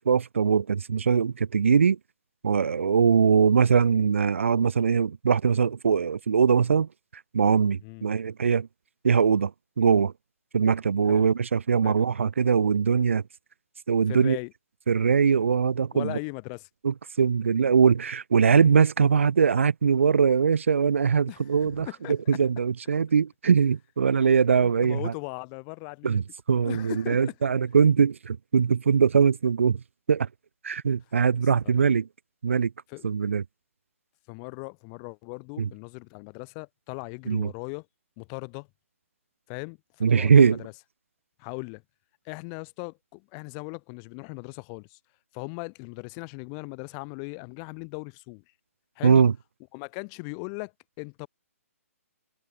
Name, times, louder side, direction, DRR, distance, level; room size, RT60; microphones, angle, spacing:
voice 1, 0.1-2.0 2.4-6.9 7.3-8.7 9.0-9.5 9.8-10.1 10.5-13.2 13.9-14.4 14.9-16.2 16.8-25.1 26.0-26.2 26.5-29.8 30.1-30.3 30.6-32.1 32.4-32.7 33.0-33.4 35.6-35.7 37.3-37.5 40.0-40.6 49.0-49.3, right 6 dB, 60° right, 0.7 m, -22 dB
voice 2, 14.1-14.5 15.9-16.7 21.3-22.4 24.6-26.2 26.6-27.3 31.6-31.8 32.9-33.1 34.3-37.9 38.2-38.7 39.5-40.7 41.4-41.8 42.2-45.0 45.3-48.4 49.0-49.2 49.7-51.3, left 40 dB or more, 25° left, 1.1 m, -39 dB
figure-of-eight pair, 130°, 8 cm